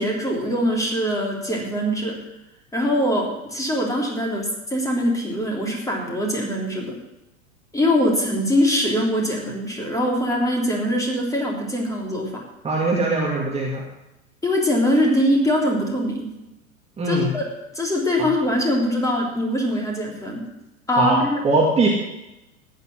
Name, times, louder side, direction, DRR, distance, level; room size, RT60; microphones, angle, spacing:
voice 1, 0.0-2.2 2.7-7.0 7.7-12.4 14.4-16.3 17.1-17.5 17.7-20.4 20.9-21.4, equal, 10° left, -1 dB, 3.4 m, -22 dB
voice 2, 12.6-13.8 17.0-17.3 18.2-18.3 20.9-21.2 21.4-21.9, right 2 dB, 15° right, -2 dB, 2.2 m, -21 dB
14.5 x 10.0 x 6.2 m, 0.93 s
figure-of-eight pair, 95°, 42 cm